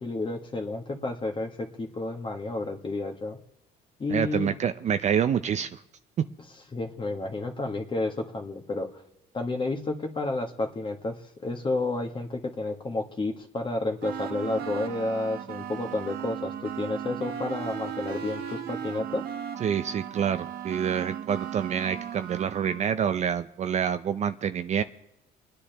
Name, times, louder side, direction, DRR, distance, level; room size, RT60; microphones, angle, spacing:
voice 1, 0.0-3.4 4.0-4.5 6.7-9.0 9.3-11.2 11.4-19.2, left 2 dB, 30° left, 2 dB, 1.7 m, -31 dB
voice 2, 4.1-5.8 19.6-24.8, right 8 dB, 45° right, 10 dB, 0.5 m, -27 dB
sound 1, 14.0-22.8, right 9 dB, 65° right, 1.1 m, -36 dB
29.0 x 10.0 x 3.5 m, 0.89 s
cardioid pair, 110°, 17 cm